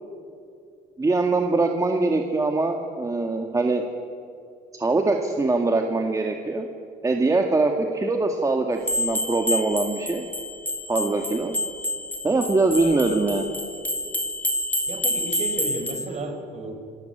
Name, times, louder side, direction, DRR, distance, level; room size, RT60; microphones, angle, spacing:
voice 1, 1.0-3.9 4.7-6.7 7.0-10.3 10.9-11.6 12.2-13.4, right 3 dB, 20° right, 3 dB, 1.9 m, -23 dB
sound 1, 8.8-16.1, left 1 dB, 10° left, 3.4 m, -28 dB
voice 2, 14.9-16.7, right 2 dB, 40° right, 6 dB, 5.3 m, -32 dB
28.0 x 20.0 x 9.2 m, 2.5 s
cardioid pair, 110°, 17 cm